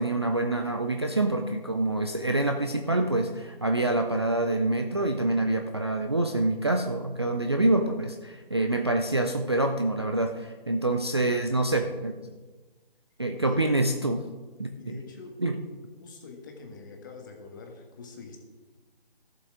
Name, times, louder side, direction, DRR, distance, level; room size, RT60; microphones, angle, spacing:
voice 1, 0.0-12.1 13.2-14.2 14.6-15.0 15.4-15.5, right 2 dB, 25° right, 4 dB, 0.5 m, -26 dB
voice 2, 14.7-15.4 16.0-18.4, left 4 dB, 20° left, 2 dB, 1.4 m, -45 dB
13.5 x 7.7 x 4.9 m, 1.3 s
figure-of-eight pair, 160°, 30 cm